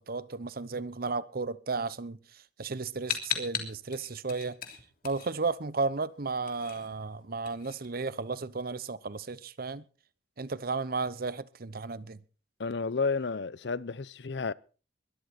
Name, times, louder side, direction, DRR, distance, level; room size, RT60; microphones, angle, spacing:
voice 1, 0.1-2.2 2.6-4.6 5.0-9.8 10.4-12.2, right 4 dB, 55° right, 0.9 m, -34 dB
sound 1, 3.1-5.8 6.1-8.5, left 8 dB, 55° left, 3.2 m, -37 dB
voice 2, 12.6-14.5, left 4 dB, 70° left, 0.7 m, -31 dB
21.5 x 13.0 x 4.3 m
head